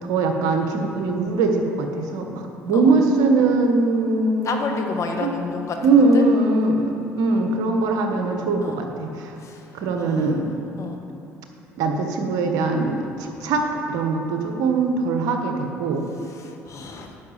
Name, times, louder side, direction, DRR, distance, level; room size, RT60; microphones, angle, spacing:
voice 1, 0.0-4.9 5.2-5.3 5.8-9.3 9.7-10.5 11.8-13.0 13.4-16.1, right 3 dB, 70° right, 3 dB, 1.2 m, -21 dB
voice 2, 4.4-6.2 8.6-8.8 9.4-9.6 10.0-10.4 10.8-11.0 13.4-13.5 16.2-17.2, left 4 dB, 50° left, 3 dB, 1.4 m, -31 dB
10.5 x 5.8 x 7.4 m, 2.8 s
hypercardioid pair, 60°, 6 cm